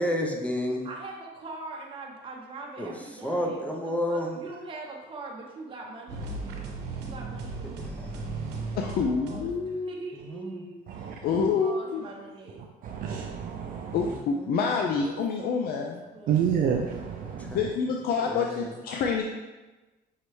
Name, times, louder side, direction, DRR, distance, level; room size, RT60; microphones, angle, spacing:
voice 1, 0.0-0.8 2.8-2.9 3.2-4.4 7.8-8.0 10.3-10.6 14.0-14.1 14.4-14.7 17.5-17.6 18.2-18.7, equal, 10° left, 1 dB, 0.6 m, -30 dB
voice 2, 0.8-3.8 4.1-6.3 7.0-8.3 8.7-12.6 15.0-16.4, right 3 dB, 30° right, -1 dB, 0.8 m, -42 dB
sound 1, 6.1-9.8, right 3 dB, 90° right, 0.8 m, -36 dB
voice 3, 8.8-9.9 11.2-12.1 13.9-16.0 17.5-19.2, left 5 dB, 65° left, 2 dB, 0.4 m, -27 dB
voice 4, 10.9-11.5 12.6-14.2 16.3-17.7, right 8 dB, 55° right, 2 dB, 0.4 m, -30 dB
5.6 x 3.0 x 3.1 m, 1.2 s
cardioid pair, 110°, 17 cm